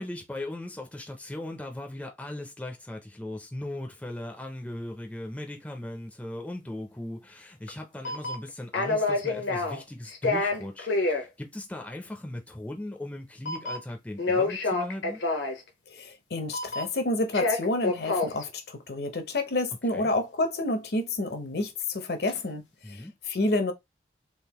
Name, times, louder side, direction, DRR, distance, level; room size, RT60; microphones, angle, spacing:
voice 1, 0.0-15.2 19.9-20.1 22.8-23.1, left 1 dB, 10° left, 0.5 m, -38 dB
sound 1, 7.7-7.8 8.0-8.5 8.7-9.8 10.1-11.2 13.4-13.9 14.2-15.6 16.5-17.0 17.3-18.4 22.3-22.4, left 3 dB, 85° left, 1.0 m, -27 dB
voice 2, 15.9-22.7 23.3-23.7, left 2 dB, 60° left, 0.7 m, -29 dB
3.6 x 2.5 x 2.9 m
head